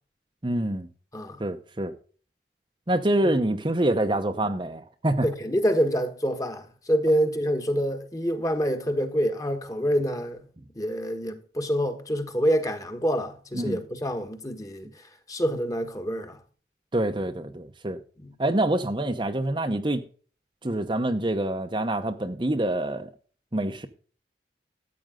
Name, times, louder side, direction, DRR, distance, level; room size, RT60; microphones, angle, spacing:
voice 1, 0.4-0.9 1.4-1.9 2.9-5.3 13.5-13.8 16.9-18.0 18.4-20.0 20.6-23.1 23.5-23.9, right 1 dB, 25° right, 0.8 m, -26 dB
voice 2, 5.2-10.5 10.7-16.4 18.2-18.3, equal, 20° left, 1.4 m, -27 dB
14.0 x 8.7 x 3.7 m
head